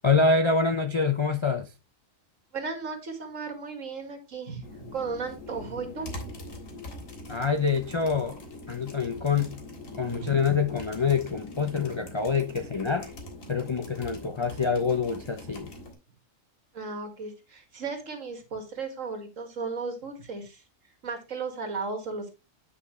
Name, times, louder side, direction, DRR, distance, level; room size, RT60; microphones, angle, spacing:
voice 1, 0.0-1.7 7.3-8.4 8.7-9.6 10.0-13.1 13.5-15.7, left 4 dB, 50° left, 0.3 m, -26 dB
voice 2, 2.5-6.1 10.1-10.4 16.7-20.6 21.0-22.3, right 4 dB, 70° right, 2.3 m, -35 dB
sound 1, 4.6-15.9, left 1 dB, 70° left, 2.2 m, -43 dB
9.3 x 5.7 x 3.1 m
omnidirectional pair, 1.4 m